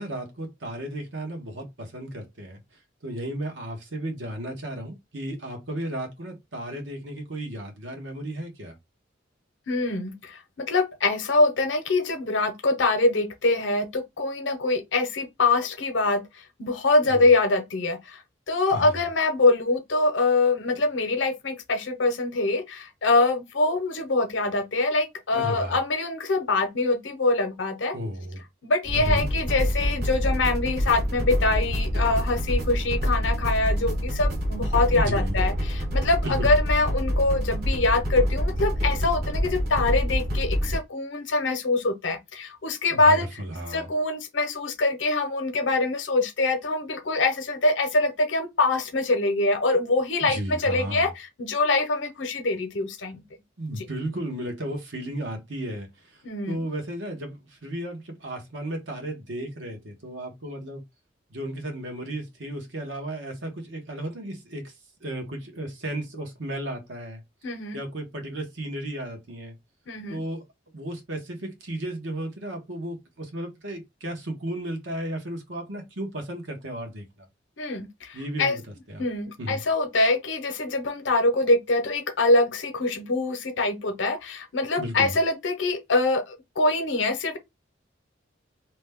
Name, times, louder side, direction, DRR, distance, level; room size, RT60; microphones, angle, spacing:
voice 1, 0.0-2.6 3.0-8.7 17.0-17.2 18.7-19.0 25.3-25.8 27.9-28.4 28.9-29.3 34.9-35.4 36.2-36.6 42.9-43.9 50.2-51.1 53.6-60.8 61.3-67.2 67.7-69.5 70.1-70.4 70.7-77.3 78.1-78.6 78.9-79.1 79.4-79.6 84.8-85.2, right 1 dB, 80° right, 1.1 m, -34 dB
voice 2, 9.7-16.2 16.6-28.0 28.6-43.4 43.7-53.2 53.7-53.9 56.2-56.6 67.4-67.8 69.9-70.2 77.6-78.6 79.0-87.4, left 2 dB, 75° left, 0.7 m, -24 dB
sound 1, 28.9-40.8, equal, 55° right, 1.0 m, -26 dB
2.9 x 2.2 x 3.5 m
head